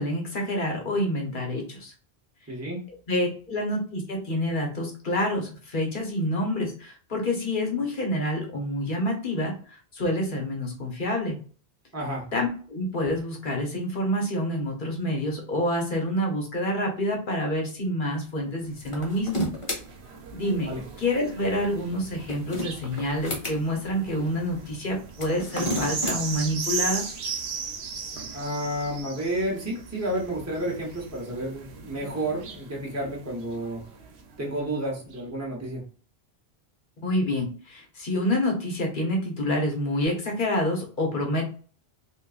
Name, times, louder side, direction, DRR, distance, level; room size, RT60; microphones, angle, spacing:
voice 1, 0.0-1.9 3.1-11.4 12.3-19.5 20.3-20.7 21.0-27.0 37.0-41.5, left 1 dB, 55° left, 1 dB, 1.1 m, -27 dB
voice 2, 2.5-2.8 11.9-12.3 20.7-20.8 28.3-33.8 34.4-35.8, right 1 dB, 15° right, -2 dB, 0.9 m, -31 dB
sound 1, 18.7-34.5 35.1-35.2, right 5 dB, 80° right, 0.9 m, -38 dB
sound 2, 18.8-19.8 22.0-23.6 25.1-26.2, left 1 dB, 30° left, 1.0 m, -31 dB
3.6 x 2.6 x 2.4 m, 0.40 s
omnidirectional pair, 1.1 m